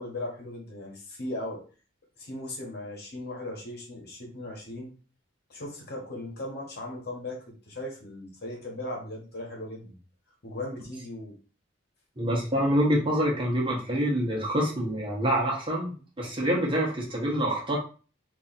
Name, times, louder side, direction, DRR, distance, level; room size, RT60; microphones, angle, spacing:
voice 1, 0.0-1.6 2.2-4.9 5.5-10.0 10.4-11.3, left 1 dB, 55° left, 0 dB, 1.3 m, -38 dB
voice 2, 12.2-17.8, equal, 25° right, -3 dB, 1.1 m, -26 dB
3.1 x 2.7 x 4.0 m, 0.37 s
head